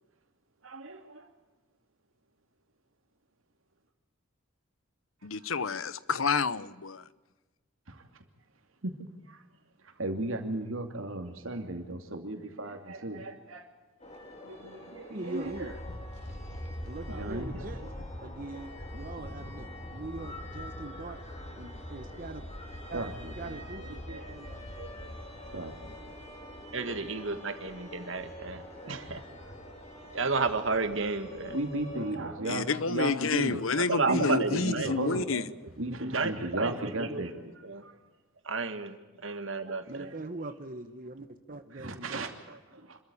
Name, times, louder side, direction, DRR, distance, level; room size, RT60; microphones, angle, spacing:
voice 1, 0.6-1.3 7.9-8.0 8.8-8.9 9.3-9.4 9.8-13.7 14.4-15.7 17.1-17.9 22.9-24.3 24.8-25.9 27.3-27.6 28.8-29.1 31.5-33.6 34.1-35.3 35.8-37.3 37.8-37.9 39.2-39.4 39.7-39.8 41.7-43.0, right 1 dB, 85° right, 2.6 m, -36 dB
voice 2, 5.2-7.0 32.5-35.4, left 4 dB, 80° left, 0.9 m, -29 dB
sound 1, 14.0-32.2, left 1 dB, 30° left, 3.9 m, -43 dB
voice 3, 15.1-15.7 16.9-17.8 18.2-21.2 21.6-22.5 22.9-23.1 23.4-24.7 39.9-42.3, right 2 dB, 45° right, 1.1 m, -42 dB
voice 4, 26.7-29.2 30.1-31.6 33.8-35.4 36.0-37.2 37.6-37.8 38.5-39.0 39.2-40.1, right 3 dB, 65° right, 1.9 m, -32 dB
26.0 x 13.5 x 8.4 m
head